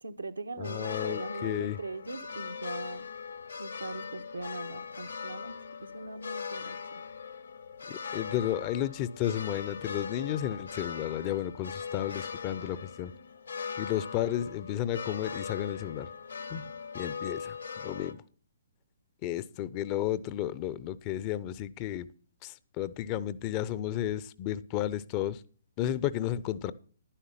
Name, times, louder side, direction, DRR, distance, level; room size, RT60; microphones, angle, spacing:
voice 1, 0.0-3.0 3.6-5.5 5.8-6.8 16.5-16.6, right 2 dB, 80° right, 9 dB, 1.1 m, -40 dB
sound 1, 0.6-18.1, left 6 dB, 65° left, 1.3 m, -40 dB
voice 2, 0.6-1.8 7.9-13.1 13.8-16.1 16.5-16.6 16.9-17.6 17.8-18.2 19.2-22.1 22.4-25.4 25.8-26.7, left 12 dB, 30° left, 18 dB, 0.6 m, -33 dB
11.5 x 10.0 x 5.8 m, 0.42 s
figure-of-eight pair, 125°, 0 cm